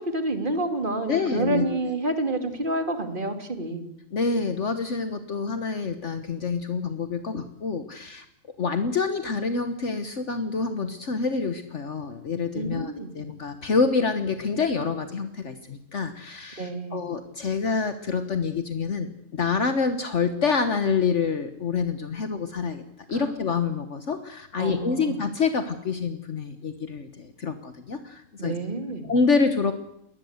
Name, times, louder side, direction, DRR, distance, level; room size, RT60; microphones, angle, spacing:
voice 1, 0.0-3.8 12.5-13.1 16.6-17.0 23.1-23.3 24.6-25.2 28.4-29.1, right 2 dB, 35° right, 7 dB, 2.7 m, -29 dB
voice 2, 1.1-1.8 4.1-8.2 8.6-22.8 23.1-28.5 29.0-29.7, left 5 dB, 60° left, 9 dB, 1.5 m, -27 dB
22.0 x 20.0 x 8.1 m, 0.79 s
omnidirectional pair, 1.4 m